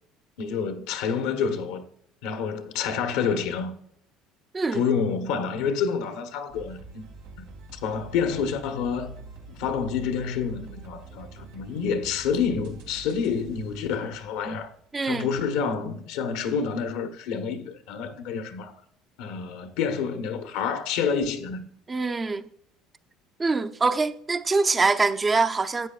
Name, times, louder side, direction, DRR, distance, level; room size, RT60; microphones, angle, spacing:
voice 1, 0.4-1.8 2.2-3.7 4.7-7.0 7.4-7.5 7.7-9.1 9.5-14.7 15.0-18.8 19.2-21.6, left 6 dB, 80° left, 1.1 m, -28 dB
voice 2, 4.5-4.8 14.9-15.3 21.9-22.5 23.4-25.9, right 3 dB, 25° right, 0.6 m, -24 dB
sound 1, 6.5-14.9, right 3 dB, 90° right, 1.8 m, -45 dB
12.5 x 8.7 x 2.4 m
supercardioid pair, 85°, 0 cm